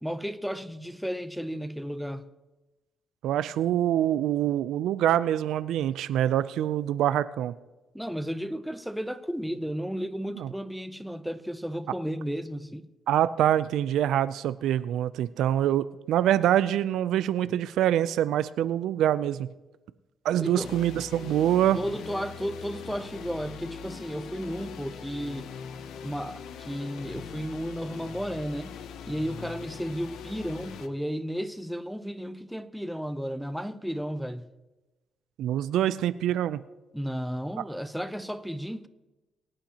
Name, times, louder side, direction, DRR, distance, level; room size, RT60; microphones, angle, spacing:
voice 1, 0.0-2.3 7.9-12.9 20.4-20.7 21.3-21.4 21.7-25.5 26.0-28.8 29.1-34.5 36.9-38.9, equal, ahead, 0.7 m, -33 dB
voice 2, 3.2-7.5 10.4-10.5 13.1-19.5 20.2-21.8 35.4-36.6, right 11 dB, 80° right, 0.4 m, -25 dB
sound 1, 20.6-30.9, left 7 dB, 80° left, 0.7 m, -42 dB
23.0 x 8.8 x 2.9 m
cardioid pair, 90°, 0 cm